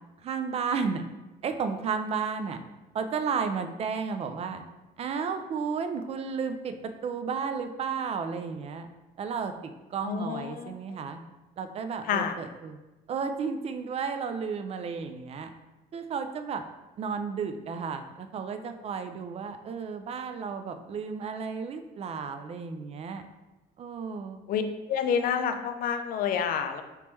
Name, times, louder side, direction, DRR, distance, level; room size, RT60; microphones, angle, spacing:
voice 1, 0.2-1.0 1.4-2.6 2.9-4.6 5.0-8.9 9.2-11.2 11.6-12.8 13.1-15.5 15.9-16.6 17.0-23.2 23.8-24.4, right 5 dB, 40° right, 8 dB, 0.3 m, -33 dB
voice 2, 10.0-10.7 12.1-12.3 24.5-24.6 24.9-26.8, left 7 dB, 60° left, 7 dB, 0.4 m, -28 dB
3.3 x 3.0 x 3.0 m, 1.1 s
cardioid pair, 110°, 17 cm